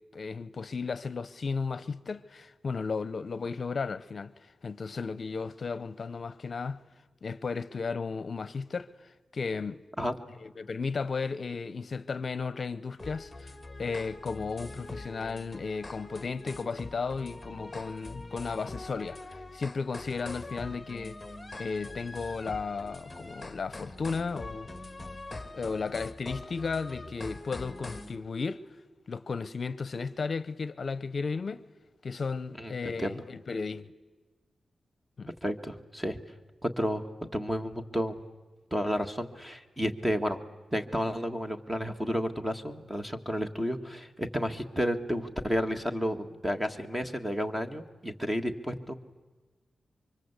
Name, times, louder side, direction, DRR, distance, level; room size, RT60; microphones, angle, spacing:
voice 1, 0.1-6.8 7.2-9.8 10.4-13.5 13.8-21.2 21.6-24.7 25.5-28.6 29.1-31.6 32.0-33.9 35.2-35.3, left 4 dB, 50° left, 0.8 m, -34 dB
sound 1, 13.0-28.2, left 2 dB, 10° left, 1.9 m, -43 dB
voice 2, 32.6-33.2 35.4-36.2 36.6-38.1 38.7-40.4 40.7-48.9, equal, 10° right, 1.7 m, -31 dB
29.0 x 25.0 x 8.2 m
wide cardioid pair, 130°, 0 cm